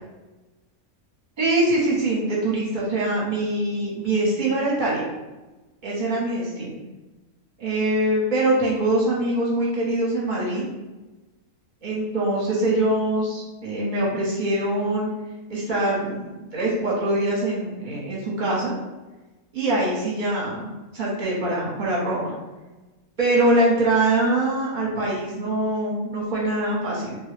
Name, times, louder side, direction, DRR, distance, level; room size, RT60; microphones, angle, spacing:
voice 1, 1.4-5.1 5.8-6.7 7.6-10.6 11.8-15.1 15.5-18.7 19.5-22.3 23.2-27.2, right 1 dB, 40° right, -6 dB, 1.1 m, -23 dB
3.0 x 2.3 x 3.2 m, 1.1 s
omnidirectional pair, 1.5 m